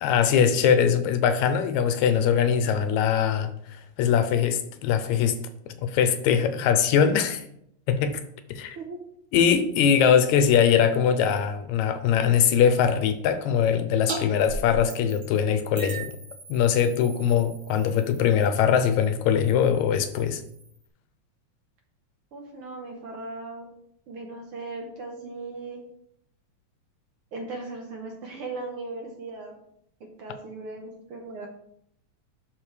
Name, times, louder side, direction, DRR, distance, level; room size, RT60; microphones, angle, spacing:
voice 1, 0.0-5.4 5.8-7.4 7.9-8.2 8.5-8.8 9.3-16.1 16.5-20.4, left 8 dB, 80° left, 10 dB, 1.9 m, -22 dB
sound 1, 14.1-14.2 14.5-15.4 15.8-20.9, right 3 dB, 45° right, 2.2 m, -39 dB
voice 2, 22.3-23.7 24.1-25.8 27.3-29.5 30.2-31.5, right 3 dB, 65° right, 1 dB, 1.5 m, -37 dB
11.5 x 4.1 x 3.2 m, 0.71 s
omnidirectional pair, 3.4 m